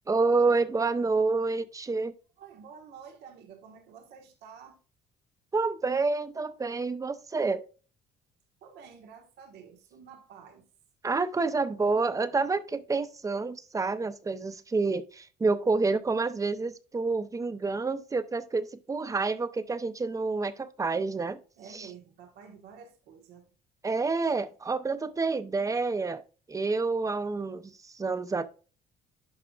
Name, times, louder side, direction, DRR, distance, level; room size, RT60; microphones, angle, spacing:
voice 1, 0.1-2.1 5.5-7.6 11.0-21.4 21.7-21.9 23.8-26.2 26.5-28.5, right 3 dB, 20° right, 0.7 m, -28 dB
voice 2, 2.4-4.8 8.6-10.7 21.6-23.5, right 7 dB, 80° right, 1.5 m, -50 dB
11.0 x 4.8 x 2.4 m
cardioid pair, 110°, 17 cm